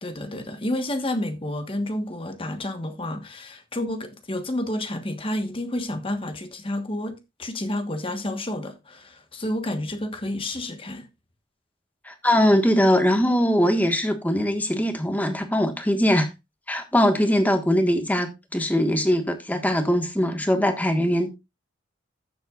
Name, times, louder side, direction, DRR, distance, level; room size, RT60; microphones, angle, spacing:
voice 1, 0.0-11.1, left 1 dB, 25° left, 1.3 m, -30 dB
voice 2, 12.0-16.3 16.7-21.3, equal, 10° left, 1.5 m, -21 dB
14.5 x 7.8 x 2.4 m
head